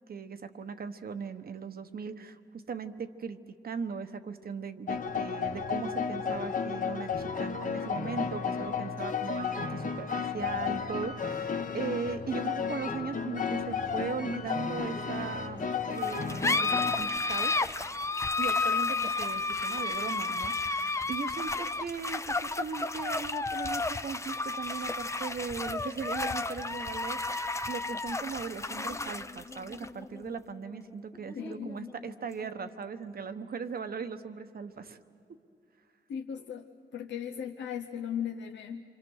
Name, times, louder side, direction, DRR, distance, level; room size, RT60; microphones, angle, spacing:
voice 1, 0.1-15.6 15.9-17.5 18.4-35.0, right 5 dB, 55° right, 9 dB, 1.1 m, -38 dB
sound 1, 4.9-17.0, left 6 dB, 45° left, 1.2 m, -33 dB
sound 2, 16.0-33.0, left 3 dB, 15° left, 0.6 m, -32 dB
voice 2, 31.3-31.9 36.1-36.6 36.9-38.8, left 8 dB, 80° left, 3 dB, 0.8 m, -37 dB
27.5 x 25.5 x 6.4 m, 2.4 s
wide cardioid pair, 115°, 18 cm